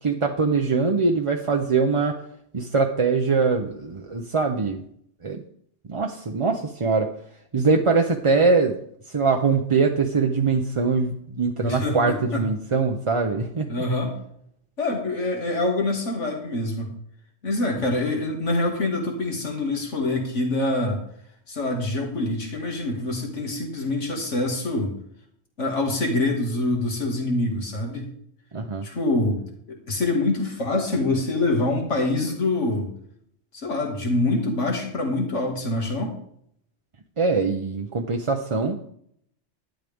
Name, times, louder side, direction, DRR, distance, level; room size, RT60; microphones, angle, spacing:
voice 1, 0.0-2.2 2.5-4.8 5.2-5.4 5.9-7.1 7.5-8.8 9.1-13.7 28.5-28.9 37.2-38.9, right 4 dB, 35° right, 3 dB, 0.7 m, -22 dB
voice 2, 11.6-12.5 13.7-14.1 14.8-16.9 17.4-21.0 21.5-24.9 25.6-28.1 28.8-29.4 29.7-32.9 33.5-36.1, left 2 dB, 90° left, 1 dB, 2.5 m, -25 dB
11.5 x 10.5 x 3.5 m, 0.67 s
omnidirectional pair, 1.2 m